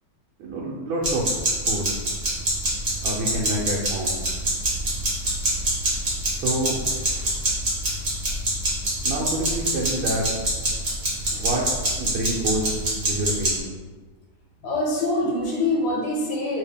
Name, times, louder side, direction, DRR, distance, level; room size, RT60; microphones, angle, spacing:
voice 1, 0.4-1.3 1.7-1.9 3.0-4.2 6.3-6.8 9.0-10.3 11.3-11.6 12.0-13.6, right 1 dB, 85° right, -5 dB, 1.4 m, -27 dB
sound 1, 1.0-13.5, right 1 dB, 40° right, 1.2 m, -25 dB
voice 2, 14.6-16.6, left 2 dB, 90° left, -3 dB, 1.6 m, -24 dB
3.2 x 2.8 x 3.4 m, 1.4 s
omnidirectional pair, 2.3 m